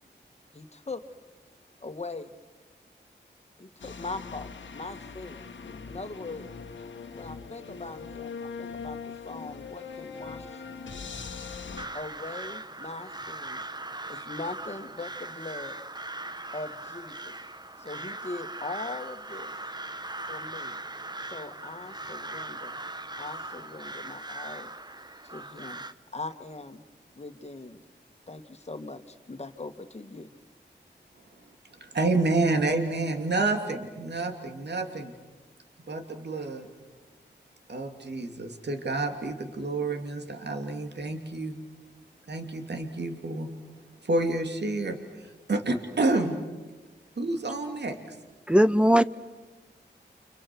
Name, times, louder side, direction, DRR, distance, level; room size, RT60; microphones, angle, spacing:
voice 1, 0.5-1.0 1.8-2.3 3.6-5.5 5.9-6.5 7.2-9.0 9.2-10.6 11.9-13.6 14.1-15.8 16.5-17.3 17.8-19.5 20.3-20.8 21.3-22.7 23.2-24.7 25.2-25.8 26.1-26.8 27.2-27.8 28.3-30.3, left 3 dB, 35° left, 8 dB, 2.0 m, -40 dB
sound 1, 3.8-11.8, left 5 dB, 85° left, 1.6 m, -41 dB
Crow, 11.8-25.9, right 2 dB, 20° right, 1.1 m, -39 dB
voice 2, 31.8-35.1 35.9-36.7 37.7-41.6 42.3-43.5 44.0-45.0 45.5-46.4 47.2-48.2, right 2 dB, 65° right, 5 dB, 2.8 m, -29 dB
voice 3, 48.5-49.0, equal, 5° right, 12 dB, 0.8 m, -18 dB
30.0 x 26.5 x 6.2 m, 1.2 s
cardioid pair, 45°, 19 cm